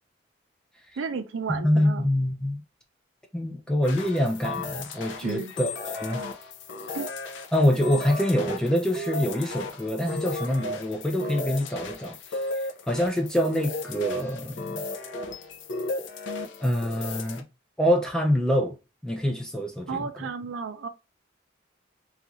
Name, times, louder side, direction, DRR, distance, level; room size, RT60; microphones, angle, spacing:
voice 1, 1.0-2.1 5.2-5.5 6.9-7.1 19.9-20.9, right 5 dB, 85° right, 0.4 m, -32 dB
voice 2, 1.5-2.6 3.3-6.3 7.5-12.2 12.9-14.8 16.6-17.4 17.8-18.8 19.0-20.3, equal, 5° left, 0.3 m, -25 dB
sound 1, 3.8-17.4, left 2 dB, 70° left, 0.4 m, -35 dB
2.4 x 2.4 x 2.9 m
head